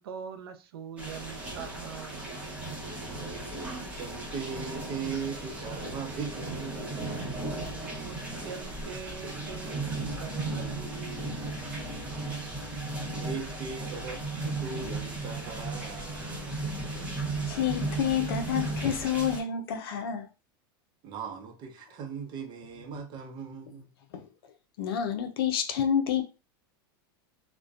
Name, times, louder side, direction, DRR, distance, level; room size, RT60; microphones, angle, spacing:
voice 1, 0.0-2.3 8.0-11.4, right 8 dB, 85° right, 0.4 m, -43 dB
sound 1, 1.0-19.4, right 2 dB, 10° right, 0.9 m, -36 dB
voice 2, 3.5-7.1 11.8-12.2 13.2-16.6 21.0-23.9, right 6 dB, 40° right, 0.6 m, -39 dB
voice 3, 17.5-20.3 24.1-24.3 24.8-26.2, left 8 dB, 80° left, 0.5 m, -28 dB
2.4 x 2.1 x 2.4 m
supercardioid pair, 120°, 12 cm